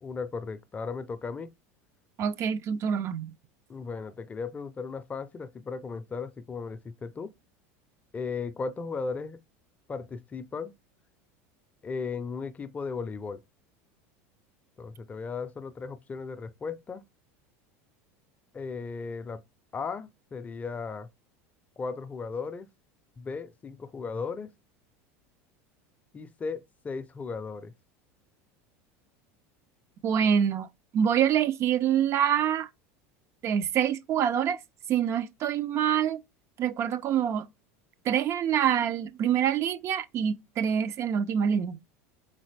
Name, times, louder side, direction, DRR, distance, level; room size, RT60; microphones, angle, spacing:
voice 1, 0.0-1.5 3.7-7.3 8.1-9.4 9.9-10.7 11.8-13.4 14.8-17.0 18.5-19.4 19.7-21.1 21.8-22.7 23.2-24.5 26.1-27.7, left 4 dB, 20° left, 0.4 m, -36 dB
voice 2, 2.2-3.3 30.0-30.7 30.9-32.7 33.4-34.6 34.9-36.2 36.6-37.5 38.1-41.8, right 9 dB, 40° right, 0.4 m, -26 dB
4.0 x 3.8 x 3.2 m
supercardioid pair, 115°, 7 cm